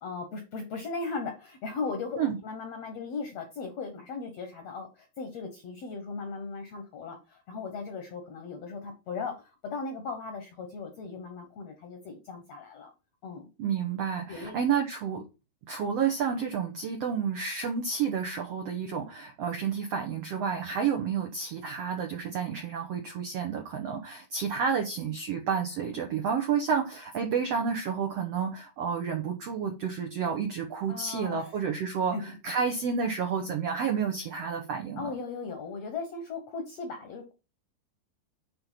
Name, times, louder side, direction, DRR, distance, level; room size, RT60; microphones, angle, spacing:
voice 1, 0.0-12.9 13.2-13.5 14.3-14.6 30.9-31.5 32.1-32.4 35.0-37.3, left 4 dB, 60° left, 5 dB, 1.8 m, -37 dB
voice 2, 13.6-15.2 15.7-35.1, right 6 dB, 80° right, 4 dB, 1.4 m, -30 dB
8.7 x 3.8 x 5.7 m, 0.29 s
omnidirectional pair, 4.5 m